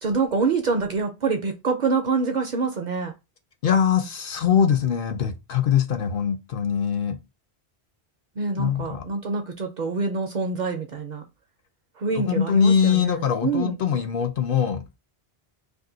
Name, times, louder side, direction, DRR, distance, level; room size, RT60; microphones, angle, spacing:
voice 1, 0.0-3.1 8.4-11.2 12.0-13.8, right 4 dB, 55° right, 0.6 m, -26 dB
voice 2, 3.6-7.2 8.6-9.1 12.1-14.8, left 8 dB, 65° left, 0.7 m, -22 dB
2.6 x 2.5 x 3.7 m
omnidirectional pair, 1.1 m